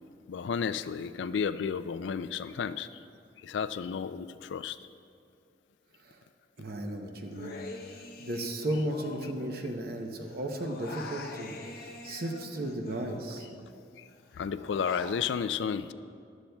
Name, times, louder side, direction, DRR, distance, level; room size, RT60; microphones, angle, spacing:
voice 1, 0.3-2.9 3.4-4.8 14.0-14.1 14.3-15.9, left 6 dB, 70° left, 13 dB, 0.3 m, -32 dB
voice 2, 6.6-7.6 8.2-13.5, right 1 dB, 55° right, 3 dB, 0.8 m, -35 dB
Human voice, 7.3-10.0 10.2-13.7 14.1-15.2, left 3 dB, 55° left, 0.8 m, -45 dB
14.5 x 11.5 x 2.3 m, 2.4 s
head